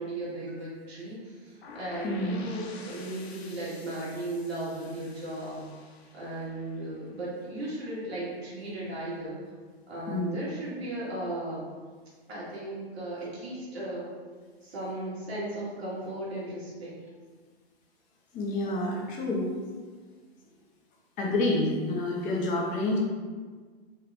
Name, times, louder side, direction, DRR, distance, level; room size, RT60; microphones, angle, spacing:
voice 1, 0.0-5.7 6.1-9.4 9.9-11.6 12.3-14.1 14.6-16.9, right 1 dB, 75° right, -7 dB, 1.3 m, -36 dB
sound 1, 1.6-7.5, left 4 dB, 85° left, 0.5 m, -49 dB
voice 2, 2.0-2.6 10.1-10.3 18.3-19.5 21.2-23.0, left 2 dB, 25° left, -2 dB, 0.6 m, -28 dB
3.4 x 2.3 x 3.0 m, 1.5 s
hypercardioid pair, 120°, 32 cm